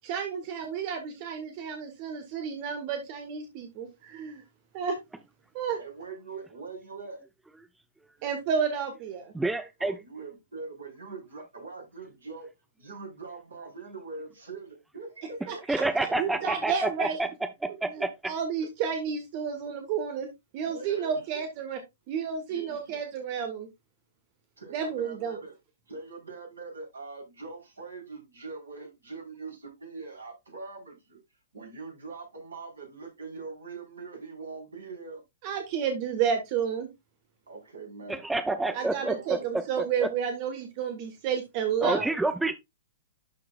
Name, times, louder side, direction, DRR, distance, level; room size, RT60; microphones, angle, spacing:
voice 1, 0.0-4.4 4.7-5.0 5.5-5.8 8.2-9.3 15.5-15.8 16.2-17.2 17.9-20.3 20.5-21.8 22.1-23.7 24.7-25.4 35.4-36.9 38.7-42.1, right 7 dB, 40° right, 1.3 m, -31 dB
voice 2, 5.8-7.2 9.8-12.5 12.8-16.5 17.7-18.0 20.6-21.4 22.5-23.0 24.6-25.5 25.9-31.2 31.5-35.2 37.5-39.5, right 4 dB, 70° right, 4.2 m, -43 dB
voice 3, 9.3-10.0 15.7-17.3 17.8-17.9 38.1-40.1 41.8-42.5, right 2 dB, 5° right, 0.6 m, -28 dB
12.0 x 4.6 x 2.4 m
figure-of-eight pair, 105°, 0 cm